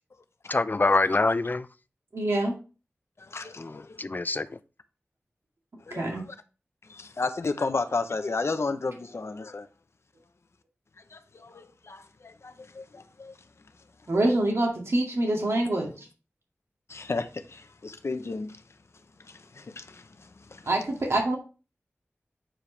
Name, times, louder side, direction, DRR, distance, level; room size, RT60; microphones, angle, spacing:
voice 1, 0.5-1.7 3.6-4.6, left 3 dB, 40° left, 0.5 m, -25 dB
voice 2, 2.1-2.5 5.9-6.3 14.1-15.9 20.7-21.4, right 1 dB, 75° right, 2.2 m, -25 dB
voice 3, 3.2-4.0 5.8-6.3 6.8-9.7 11.1-13.4 14.0-14.1 15.6-15.7 16.9-18.6 19.2-20.7, left 3 dB, 70° left, 0.8 m, -33 dB
8.8 x 4.9 x 3.3 m
wide cardioid pair, 65°, 5 cm